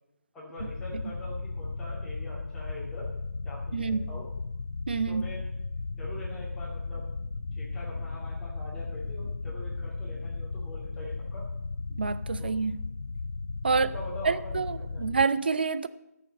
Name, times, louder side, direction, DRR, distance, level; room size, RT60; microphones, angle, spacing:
voice 1, 0.3-3.0 3.4-4.3 5.1-5.4 5.9-7.1 7.5-11.5 12.4-12.6 13.7-15.3, left 1 dB, 5° left, 2.3 m, -43 dB
sound 1, 0.6-15.3, left 3 dB, 60° left, 0.5 m, -36 dB
voice 2, 3.7-4.1 4.9-5.2 11.9-12.9 13.6-13.9 14.2-15.9, right 5 dB, 35° right, 0.5 m, -27 dB
15.0 x 6.8 x 6.4 m
figure-of-eight pair, 160°, 9 cm